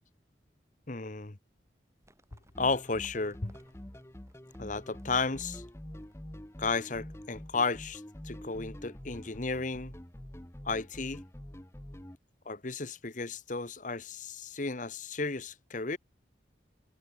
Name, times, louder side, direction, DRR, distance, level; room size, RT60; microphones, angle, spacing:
voice 1, 0.9-1.4 2.6-3.6 4.6-5.6 6.6-9.9 10.6-11.2 12.5-16.0, left 3 dB, 45° left, 1.2 m, -33 dB
Livestock farm animals working animals, 2.0-7.2, right 1 dB, 15° right, 7.5 m, -68 dB
sound 1, 2.5-12.2, equal, 15° left, 1.1 m, -46 dB
head